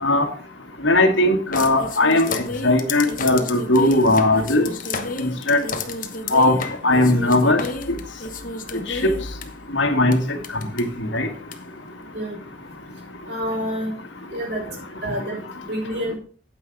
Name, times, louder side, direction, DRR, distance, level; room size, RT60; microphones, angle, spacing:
voice 1, 0.8-4.7 5.2-5.6 6.3-6.6 6.8-7.6 9.7-10.2 10.8-11.3, left 2 dB, 85° left, 6 dB, 1.7 m, -18 dB
sound 1, 1.5-9.4 10.1-10.2 10.4-10.8 11.5-11.6, left 3 dB, 45° left, 1.1 m, -31 dB
voice 2, 13.3-13.9 14.3-14.8 15.0-15.4 15.6-16.2, equal, 60° right, -2 dB, 6.5 m, -27 dB
9.1 x 8.6 x 4.8 m, 0.43 s
head